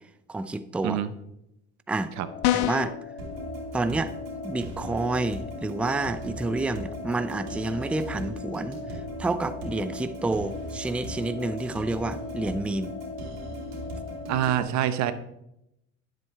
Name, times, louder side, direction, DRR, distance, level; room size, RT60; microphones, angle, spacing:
voice 1, 0.3-1.0 1.9-2.1 2.5-2.9 3.7-4.1 4.4-12.9, right 2 dB, 5° right, 12 dB, 0.4 m, -29 dB
sound 1, 2.2-14.4, left 4 dB, 40° left, 1.0 m, -39 dB
sound 2, 2.4-3.0, left 15 dB, 65° left, 0.5 m, -24 dB
sound 3, 3.2-14.6, right 2 dB, 90° right, 2.5 m, -40 dB
voice 2, 14.3-15.1, right 11 dB, 60° right, 12 dB, 0.8 m, -25 dB
10.5 x 7.7 x 3.3 m, 0.83 s
supercardioid pair, 105°, 31 cm